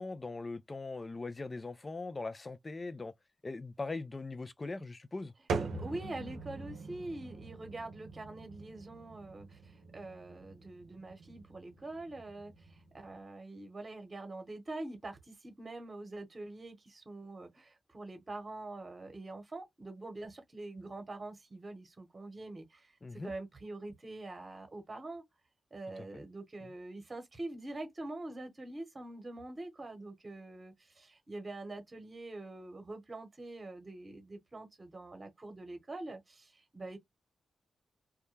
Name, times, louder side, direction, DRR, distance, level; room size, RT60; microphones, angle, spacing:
voice 1, 0.0-3.1 3.4-5.3 23.0-23.3 26.0-26.3 26.6-26.7, left 3 dB, 35° left, 0.4 m, -41 dB
sound 1, 5.5-13.2, right 4 dB, 75° right, 0.6 m, -43 dB
voice 2, 5.6-25.2 25.7-37.0, right 2 dB, 35° right, 1.0 m, -45 dB
2.2 x 2.1 x 3.2 m
supercardioid pair, 45°, 0 cm